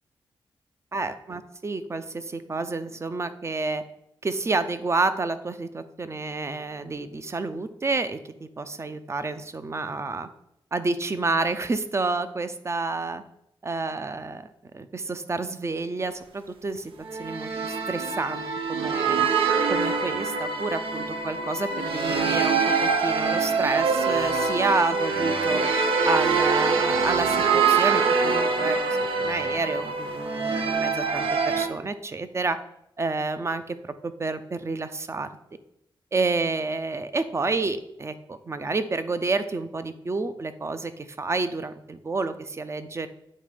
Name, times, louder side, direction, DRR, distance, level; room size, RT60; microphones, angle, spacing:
voice 1, 0.9-3.8 4.2-8.2 8.6-10.3 10.7-13.2 13.6-14.5 14.7-16.9 17.2-18.4 18.7-19.3 19.7-25.6 26.0-32.6 33.0-35.3 36.1-43.1, right 3 dB, 30° right, 11 dB, 0.5 m, -29 dB
sound 1, 17.1-31.7, right 5 dB, 80° right, 0.6 m, -24 dB
8.6 x 3.1 x 5.0 m, 0.79 s
cardioid pair, 85°, 9 cm